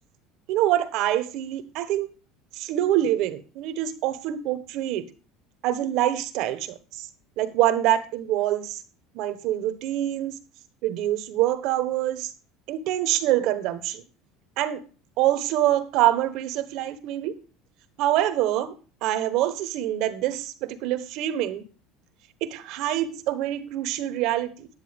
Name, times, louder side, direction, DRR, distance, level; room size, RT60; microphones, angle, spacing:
voice 1, 0.5-2.1 2.5-5.1 5.6-7.1 7.4-8.8 9.1-10.4 10.8-12.3 12.7-14.0 14.6-14.8 15.2-17.3 18.0-18.7 19.0-21.6 22.4-24.7, right 13 dB, 65° right, 13 dB, 1.0 m, -25 dB
10.5 x 9.7 x 3.5 m, 0.36 s
supercardioid pair, 110°, 0 cm